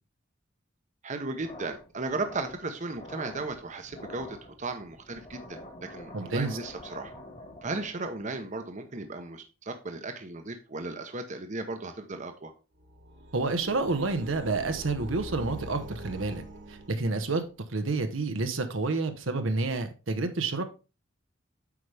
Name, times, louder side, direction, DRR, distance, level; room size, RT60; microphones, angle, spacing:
voice 1, 1.0-7.1 7.6-12.5, right 3 dB, 40° right, 0.8 m, -36 dB
sound 1, 1.3-8.2, left 1 dB, 35° left, 1.8 m, -47 dB
voice 2, 6.1-6.6 13.3-16.4 16.7-17.4 17.7-20.6, right 3 dB, 80° right, 1.0 m, -29 dB
sound 2, 12.8-17.5, equal, 60° right, 1.5 m, -43 dB
8.4 x 5.0 x 3.4 m
head